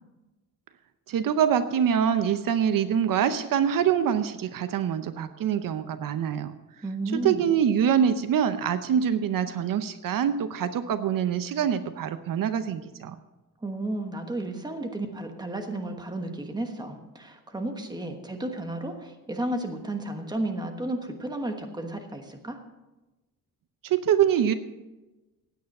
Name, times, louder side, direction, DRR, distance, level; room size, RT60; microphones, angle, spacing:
voice 1, 1.1-6.5 7.1-13.2 23.8-24.5, right 8 dB, 65° right, 11 dB, 0.7 m, -25 dB
voice 2, 6.8-7.4 13.6-22.6, right 1 dB, 10° right, 5 dB, 1.2 m, -33 dB
16.0 x 9.4 x 5.4 m, 1.1 s
wide cardioid pair, 175°, 35 cm